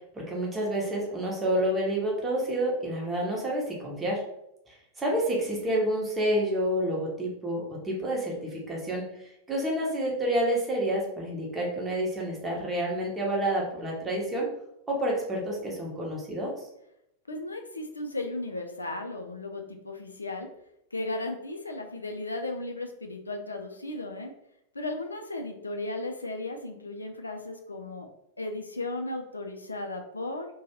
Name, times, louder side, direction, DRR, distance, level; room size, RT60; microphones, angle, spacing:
voice 1, 0.1-4.2 4.7-9.0 9.5-14.5 14.9-16.5, right 1 dB, 15° right, -3 dB, 0.9 m, -29 dB
voice 2, 17.3-20.5 20.9-24.3 24.7-28.1 28.4-30.5, left 2 dB, 80° left, 4 dB, 0.3 m, -35 dB
2.7 x 2.2 x 2.8 m, 0.78 s
figure-of-eight pair, 90°, 0 cm